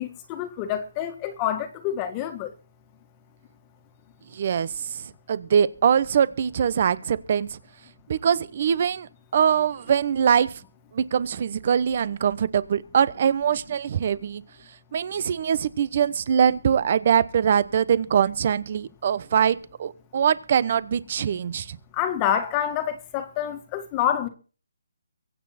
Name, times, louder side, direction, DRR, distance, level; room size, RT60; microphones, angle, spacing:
voice 1, 0.0-2.5 21.9-24.3, left 10 dB, 20° left, 1.7 m, -27 dB
voice 2, 4.3-7.6 8.1-10.5 10.9-14.4 14.9-21.8, right 8 dB, 40° right, 1.0 m, -23 dB
23.5 x 8.7 x 4.3 m
hypercardioid pair, 165°, 0 cm